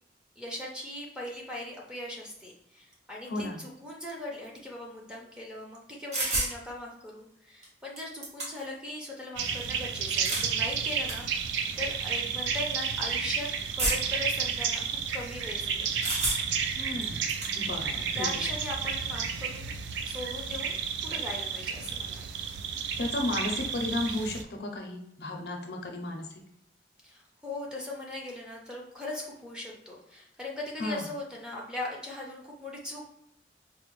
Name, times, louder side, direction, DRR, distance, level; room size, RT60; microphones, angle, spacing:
voice 1, 0.4-13.5 13.8-14.8 15.1-15.9 17.9-19.7 20.0-22.3 27.0-33.1, left 1 dB, 5° right, -4 dB, 0.6 m, -39 dB
voice 2, 3.3-3.6 16.8-17.3 17.5-18.5 23.0-26.3 30.8-31.0, left 2 dB, 60° left, 2 dB, 0.5 m, -34 dB
sound 1, 6.1-6.5 7.6-7.7 8.0-8.8 10.0-10.5 11.1-11.2 12.0-12.2 13.8-14.2 16.0-16.6 17.0-17.5, right 1 dB, 40° right, 0.9 m, -30 dB
sound 2, 9.4-24.4, right 6 dB, 80° right, 0.3 m, -32 dB
4.1 x 2.1 x 3.0 m, 0.78 s
head